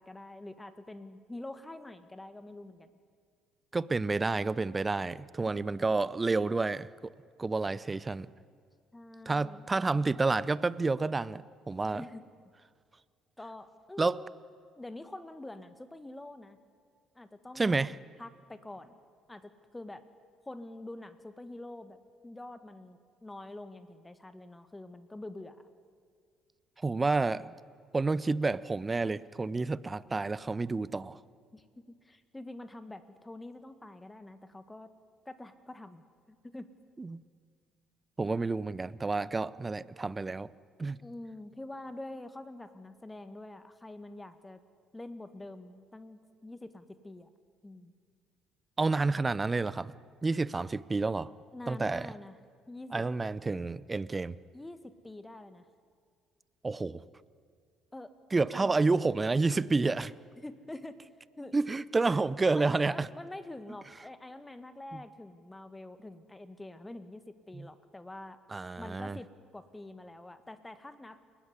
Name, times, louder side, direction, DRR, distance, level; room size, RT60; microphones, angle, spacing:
voice 1, 0.0-2.9 5.4-5.9 8.9-9.7 11.9-12.2 13.4-14.3 14.8-16.6 17.1-18.9 19.3-20.0 20.4-22.0 22.2-25.6 31.5-34.9 35.2-36.7 41.0-44.6 44.9-47.3 47.6-47.9 51.5-52.4 52.7-53.0 54.5-55.7 57.9-58.1 58.5-58.7 60.0-60.1 60.4-61.0 61.4-61.5 62.5-68.4 68.8-71.2, left 2 dB, 15° left, 1.6 m, -46 dB
voice 2, 3.7-7.1 7.4-8.3 9.3-12.0 14.0-14.2 17.6-17.9 26.8-27.5 27.9-31.2 37.0-37.2 38.2-40.5 40.8-41.0 48.8-49.9 50.2-51.3 51.7-52.1 52.9-54.4 56.6-57.0 58.3-60.1 61.5-63.1 67.5-67.7 68.5-69.2, right 3 dB, 20° right, 0.7 m, -29 dB
29.0 x 16.0 x 9.8 m
figure-of-eight pair, 50°, 0 cm